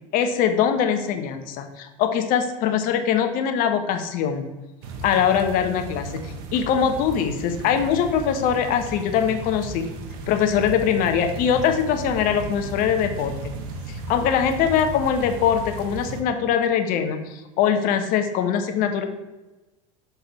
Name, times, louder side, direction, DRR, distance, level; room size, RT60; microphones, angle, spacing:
voice 1, 0.1-4.5 5.0-9.9 10.3-13.5 13.9-19.0, left 8 dB, 55° left, 7 dB, 1.0 m, -22 dB
sound 1, 4.8-16.2, right 3 dB, 60° right, 1.0 m, -35 dB
6.8 x 3.8 x 4.7 m, 1.1 s
hypercardioid pair, 85°, 17 cm